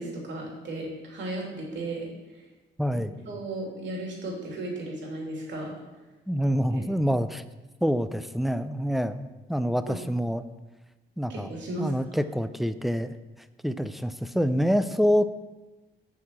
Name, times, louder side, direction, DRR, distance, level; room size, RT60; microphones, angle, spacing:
voice 1, 0.0-2.4 3.2-5.7 6.7-6.8 9.9-10.0 11.3-11.9, right 2 dB, 65° right, -1 dB, 2.9 m, -35 dB
voice 2, 2.8-3.1 6.3-7.4 7.8-10.4 11.2-11.5 11.8-13.2 13.6-15.3, equal, ahead, 11 dB, 0.4 m, -26 dB
8.1 x 4.9 x 7.4 m, 1.1 s
cardioid pair, 90°, 20 cm